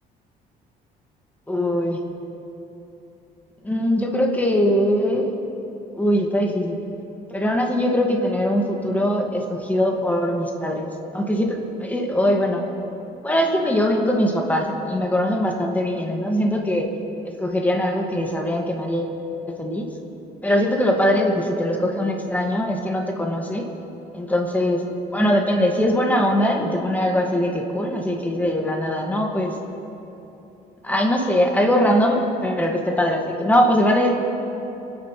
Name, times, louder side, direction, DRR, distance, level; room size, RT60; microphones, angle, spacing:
voice 1, 1.5-2.0 3.6-5.3 5.9-6.8 7.3-10.9 11.1-12.6 13.2-16.9 17.2-19.2 19.6-19.9 20.4-23.6 24.1-24.8 25.1-29.5 30.8-34.1, equal, 10° left, 0 dB, 2.0 m, -21 dB
29.5 x 10.0 x 3.3 m, 3.0 s
cardioid pair, 110°, 17 cm